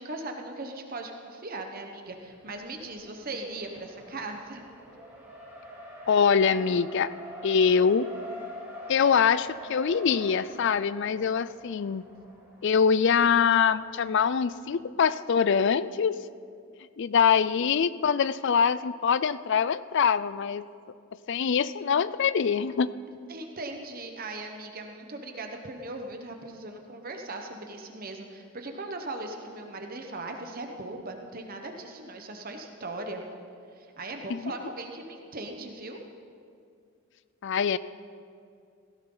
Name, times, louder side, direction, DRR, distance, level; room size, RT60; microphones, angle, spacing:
voice 1, 0.0-4.6 23.3-33.2 33.7-36.0, right 2 dB, 45° right, 4 dB, 1.1 m, -39 dB
Race car auto racing, 2.1-14.7, equal, 10° right, 2.5 m, -45 dB
voice 2, 6.1-7.1 7.4-8.1 8.9-12.0 12.6-16.2 17.0-20.7 21.3-22.9 34.3-34.4 37.4-37.8, left 6 dB, 55° left, 16 dB, 0.4 m, -24 dB
17.0 x 15.5 x 4.0 m, 2.3 s
head